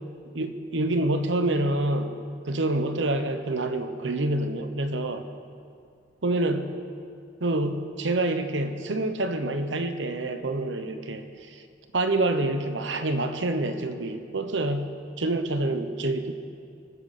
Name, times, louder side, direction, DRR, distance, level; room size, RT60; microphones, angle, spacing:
voice 1, 0.3-2.2 2.4-5.2 6.2-6.7 7.4-11.2 11.5-11.6 11.9-14.9 15.2-16.3, right 2 dB, 85° right, 8 dB, 1.1 m, -27 dB
25.0 x 9.9 x 4.3 m, 2.3 s
head